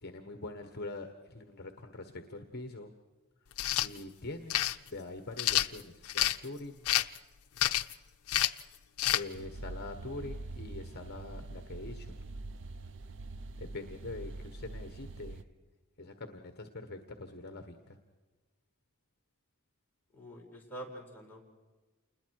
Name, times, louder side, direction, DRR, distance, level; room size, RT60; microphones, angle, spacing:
voice 1, 0.0-2.9 3.8-6.8 9.1-12.1 13.6-15.4 16.0-18.0, left 2 dB, 45° left, 6 dB, 1.4 m, -44 dB
sound 1, 3.5-3.9 4.5-4.7 5.4-6.4 6.8-7.2 7.6-7.9 8.3-8.6 9.0-9.2, left 13 dB, 80° left, 0.6 m, -28 dB
sound 2, 9.3-15.4, right 2 dB, 60° right, 0.6 m, -44 dB
voice 2, 20.1-21.4, right 1 dB, 10° left, -3 dB, 5.3 m, -46 dB
28.5 x 21.0 x 4.8 m, 1.3 s
head